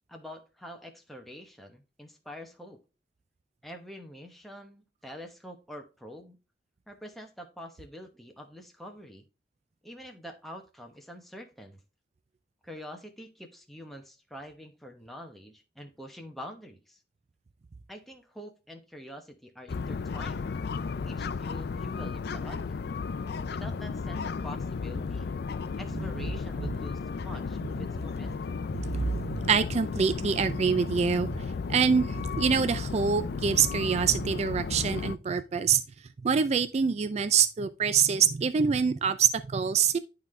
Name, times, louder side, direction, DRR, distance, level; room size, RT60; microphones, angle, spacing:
voice 1, 0.1-2.8 3.6-6.4 6.9-9.3 9.8-11.8 12.6-17.0 17.9-20.5 21.1-22.8 23.5-25.3 25.8-28.5, equal, ahead, 0.9 m, -46 dB
Morning Docks, 19.7-35.2, left 5 dB, 60° left, 0.4 m, -34 dB
voice 2, 28.8-35.8 36.2-40.0, right 6 dB, 40° right, 0.3 m, -25 dB
11.0 x 3.7 x 3.2 m
head